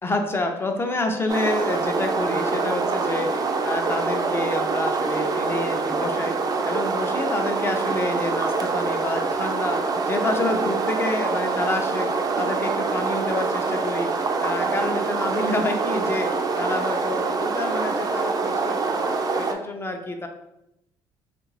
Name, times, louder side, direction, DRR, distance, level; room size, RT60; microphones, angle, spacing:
voice 1, 0.0-6.4 6.6-19.0 19.3-20.3, left 2 dB, 20° left, 4 dB, 0.5 m, -28 dB
sound 1, 1.3-19.5, right 4 dB, 35° right, 0.4 m, -25 dB
2.7 x 2.5 x 3.1 m, 0.84 s
supercardioid pair, 80°, 11 cm